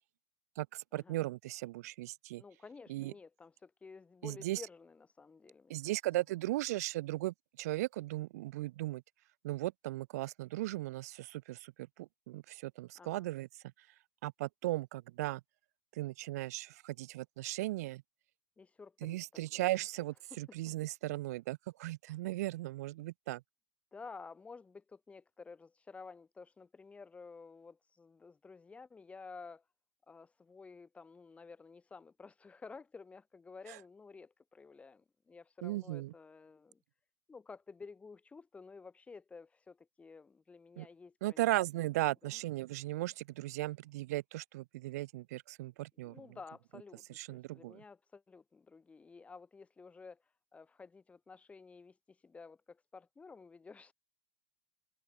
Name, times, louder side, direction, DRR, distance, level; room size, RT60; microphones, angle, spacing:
voice 1, 0.6-2.4 2.9-3.1 4.2-4.6 5.7-9.0 9.4-13.9 14.2-15.4 15.9-18.0 19.0-23.4 33.7-33.8 35.6-36.1 40.8-40.9 41.2-46.2 47.1-47.8, right 17 dB, 70° right, 1.2 m, -37 dB
voice 2, 2.4-5.9 13.0-13.3 18.6-19.2 19.5-19.8 23.9-29.6 30.1-36.8 37.3-41.5 42.2-42.4 46.0-53.9, left 4 dB, 15° left, 6.4 m, -53 dB
hypercardioid pair, 120°, 9 cm